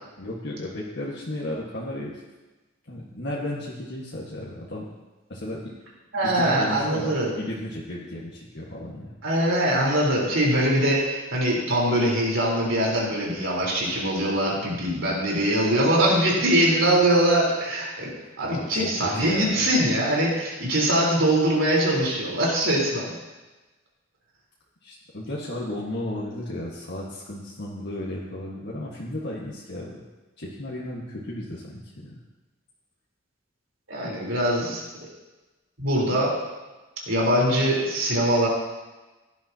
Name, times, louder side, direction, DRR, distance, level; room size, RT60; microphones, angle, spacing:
voice 1, 0.2-2.1 2.9-4.9 5.3-5.6 6.3-9.2 18.4-19.6 24.8-30.0 30.4-32.2, left 1 dB, 60° left, -5 dB, 1.6 m, -34 dB
voice 2, 6.1-7.4 9.2-18.1 18.4-23.1 33.9-34.8 35.8-36.4 37.1-38.5, right 1 dB, 75° right, -4 dB, 4.1 m, -22 dB
17.0 x 11.0 x 2.9 m, 1.2 s
head